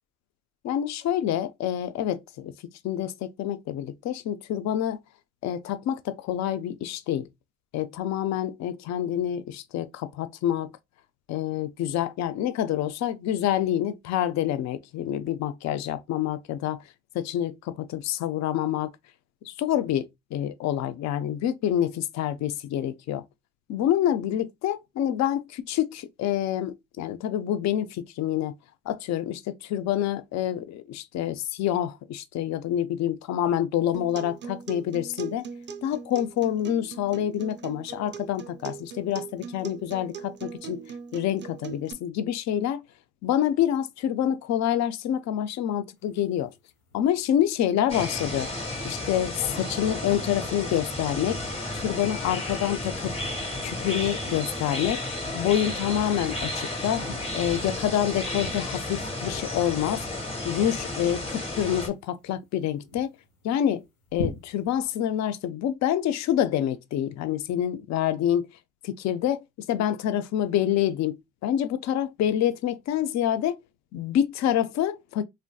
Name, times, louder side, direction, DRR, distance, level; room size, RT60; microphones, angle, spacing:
voice 1, 0.6-2.5 2.8-5.0 5.4-7.3 7.7-10.7 11.3-16.8 17.1-18.9 19.5-23.2 23.7-28.5 28.9-35.4 35.8-40.8 41.1-42.8 43.2-46.5 46.9-48.5 48.8-51.4 51.7-53.1 53.6-55.0 55.3-57.0 57.3-60.1 60.4-63.1 63.4-63.8 64.1-68.5 68.8-73.6 73.9-75.2, left 11 dB, 65° left, 0.4 m, -27 dB
Acoustic guitar, 33.9-41.9, right 7 dB, 40° right, 0.4 m, -40 dB
sound 1, 46.0-64.9, left 2 dB, 80° left, 1.7 m, -46 dB
sound 2, 47.9-61.9, left 2 dB, 20° left, 1.2 m, -33 dB
3.3 x 2.5 x 2.2 m
cardioid pair, 90°, 30 cm